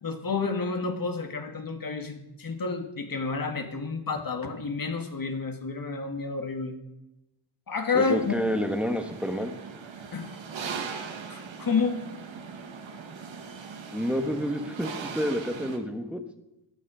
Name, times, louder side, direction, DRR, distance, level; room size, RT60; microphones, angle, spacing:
voice 1, 0.0-6.8 7.7-8.3 10.1-10.3 10.9-11.0 11.3-12.0, left 4 dB, 45° left, 6 dB, 1.9 m, -30 dB
voice 2, 7.9-9.5 13.9-16.2, equal, ahead, 6 dB, 1.5 m, -29 dB
sound 1, 8.0-15.8, right 5 dB, 75° right, 1.8 m, -40 dB
15.5 x 9.7 x 5.0 m, 0.92 s
cardioid pair, 60°, 47 cm